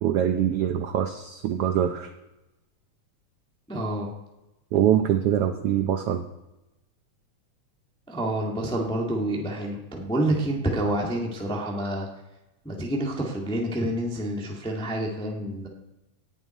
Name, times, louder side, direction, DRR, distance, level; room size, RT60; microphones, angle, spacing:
voice 1, 0.0-2.1 4.7-6.2, right 10 dB, 85° right, 7 dB, 1.3 m, -24 dB
voice 2, 3.7-4.1 8.1-12.1 12.6-15.7, right 1 dB, 5° left, -1 dB, 0.6 m, -28 dB
10.5 x 7.3 x 9.2 m, 0.99 s
omnidirectional pair, 3.5 m